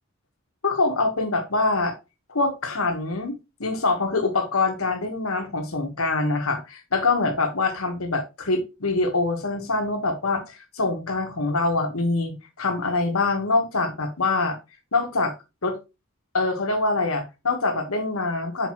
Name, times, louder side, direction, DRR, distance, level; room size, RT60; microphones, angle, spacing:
voice 1, 0.6-1.9 2.3-14.6 14.9-15.3 15.6-15.8 16.3-18.7, left 3 dB, 80° left, 5 dB, 1.5 m, -24 dB
6.0 x 5.0 x 3.1 m, 0.26 s
head